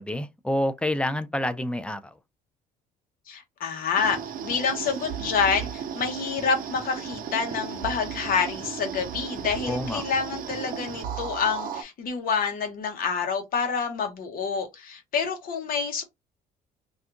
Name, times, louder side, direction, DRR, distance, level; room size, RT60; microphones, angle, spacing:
voice 1, 0.0-2.1 9.7-10.0, left 1 dB, 5° left, 0.3 m, -28 dB
voice 2, 3.3-16.0, left 6 dB, 60° left, 1.1 m, -28 dB
sound 1, 4.0-11.8, right 8 dB, 55° right, 0.6 m, -35 dB
2.6 x 2.4 x 3.6 m
cardioid pair, 110°, 17 cm